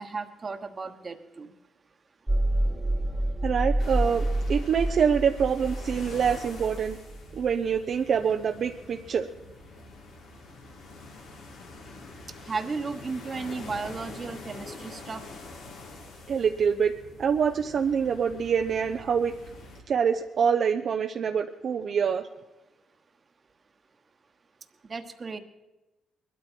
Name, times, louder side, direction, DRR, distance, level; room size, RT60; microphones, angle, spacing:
voice 1, 0.0-1.5 12.5-15.2 24.9-25.4, right 4 dB, 35° right, 8 dB, 1.2 m, -34 dB
sound 1, 2.3-7.7, right 1 dB, 10° right, 1.5 m, -28 dB
voice 2, 3.4-7.0 7.3-9.3 16.3-16.9 17.2-19.3 19.9-22.3, right 7 dB, 55° right, 5 dB, 0.7 m, -25 dB
sound 2, 3.8-19.8, left 3 dB, 85° left, 2.7 m, -45 dB
21.0 x 12.5 x 4.5 m, 1.1 s
cardioid pair, 90°, 0 cm